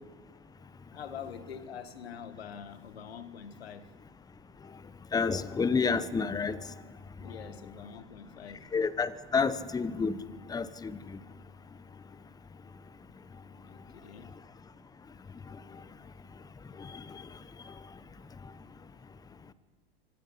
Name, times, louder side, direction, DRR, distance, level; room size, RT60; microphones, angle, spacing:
voice 1, 0.9-3.9 7.2-8.7 13.6-14.3, left 7 dB, 75° left, 11 dB, 1.8 m, -45 dB
voice 2, 5.1-6.6 8.7-10.2 10.5-10.9, left 5 dB, 10° left, 16 dB, 1.0 m, -29 dB
24.5 x 20.5 x 5.8 m, 1.4 s
hypercardioid pair, 95°, 31 cm